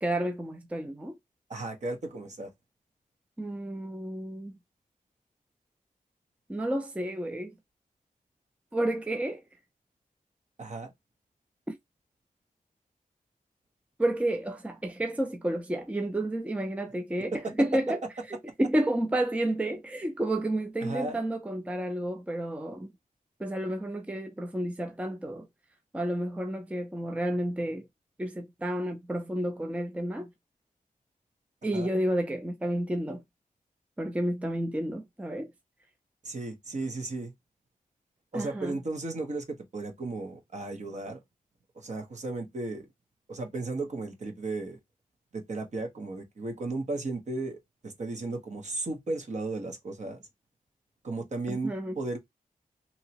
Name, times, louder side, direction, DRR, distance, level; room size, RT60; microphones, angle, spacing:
voice 1, 0.0-1.1 3.4-4.6 6.5-7.5 8.7-9.4 11.7-11.8 14.0-18.0 18.3-22.9 23.4-25.5 25.9-27.9 28.2-30.3 31.6-33.2 34.0-35.5 38.3-38.8 51.5-51.9, right 1 dB, 10° right, 0.4 m, -31 dB
voice 2, 1.5-2.5 10.6-10.9 17.3-17.5 20.8-21.2 31.7-31.9 36.2-37.3 38.3-41.2 41.7-42.9 43.3-44.8 45.3-47.6 47.8-50.2 51.0-52.2, right 2 dB, 50° right, 1.0 m, -35 dB
2.9 x 2.8 x 2.8 m
wide cardioid pair, 140°, 15 cm